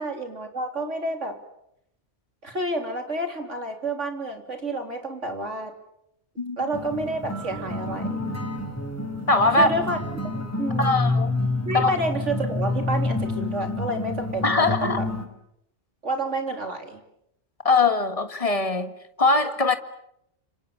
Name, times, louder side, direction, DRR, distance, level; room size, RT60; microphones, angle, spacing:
voice 1, 0.0-1.4 2.4-5.7 6.6-8.2 9.6-10.0 10.6-11.0 11.7-15.1 16.0-17.0, right 1 dB, 80° right, 4.0 m, -29 dB
sound 1, 6.7-15.3, left 2 dB, 10° left, 4.7 m, -28 dB
voice 2, 9.3-9.7 10.8-11.3 11.7-11.9 14.4-15.0 17.6-19.8, left 3 dB, 30° left, 1.8 m, -21 dB
30.0 x 27.0 x 7.3 m
omnidirectional pair, 1.2 m